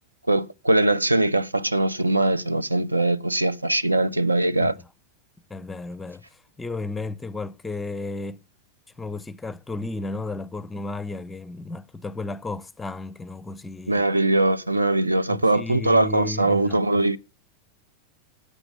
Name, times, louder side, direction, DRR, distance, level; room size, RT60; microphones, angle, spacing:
voice 1, 0.3-4.7 13.9-17.2, right 2 dB, 85° right, 0.4 m, -21 dB
voice 2, 4.6-4.9 5.5-8.4 9.0-14.0 15.3-16.8, left 2 dB, 10° left, 0.5 m, -34 dB
8.2 x 6.8 x 8.3 m
figure-of-eight pair, 90°, 0 cm